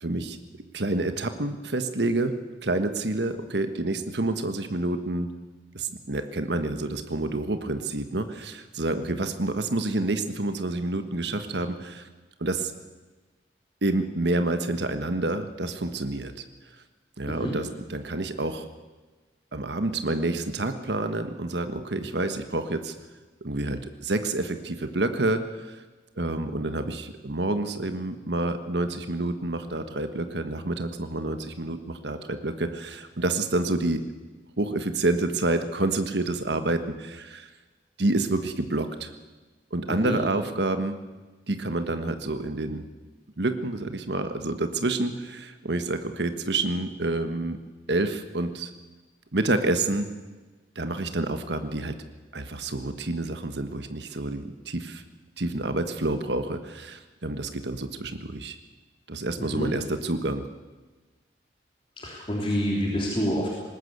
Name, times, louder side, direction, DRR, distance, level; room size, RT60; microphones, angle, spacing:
voice 1, 0.0-0.4 0.7-2.4 2.6-5.3 5.7-12.1 12.4-12.7 13.8-16.3 17.2-18.7 19.5-22.9 23.4-25.8 26.2-34.0 34.6-37.5 38.0-39.1 39.7-41.0 41.5-42.8 43.4-47.6 47.9-48.7 49.3-50.1 50.7-52.0 52.3-55.0 55.4-58.6 59.1-60.4, right 2 dB, 70° right, 9 dB, 1.4 m, -28 dB
voice 2, 17.3-17.6 39.9-40.2 59.4-59.7 62.0-63.5, equal, 30° left, -2 dB, 3.2 m, -28 dB
20.5 x 19.0 x 8.2 m, 1.3 s
head